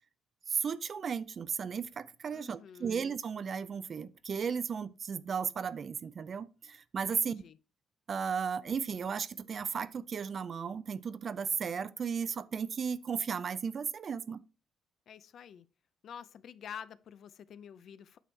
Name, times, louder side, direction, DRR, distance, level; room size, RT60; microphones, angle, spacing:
voice 1, 0.5-7.4 8.1-14.4, right 6 dB, 45° right, 0.5 m, -35 dB
voice 2, 2.3-3.0 7.1-7.6 15.1-15.7 16.0-18.2, left 8 dB, 60° left, 0.5 m, -48 dB
9.1 x 6.1 x 3.2 m
cardioid pair, 100°, 0 cm